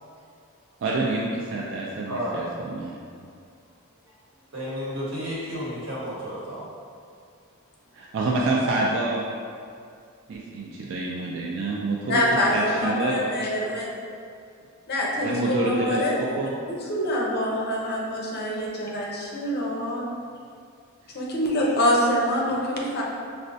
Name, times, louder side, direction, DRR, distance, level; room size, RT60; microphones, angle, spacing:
voice 1, 0.8-2.9 3.2-3.3 7.9-9.3 10.3-12.2 12.5-13.5 15.2-16.5, right 2 dB, 60° right, -3 dB, 0.3 m, -27 dB
voice 2, 2.1-2.5 4.5-6.7, equal, 75° right, -7 dB, 1.0 m, -32 dB
voice 3, 12.1-13.9 14.9-16.3 16.7-20.0 21.1-23.0, left 1 dB, 45° left, -3 dB, 0.6 m, -25 dB
5.2 x 2.1 x 2.6 m, 2.3 s
head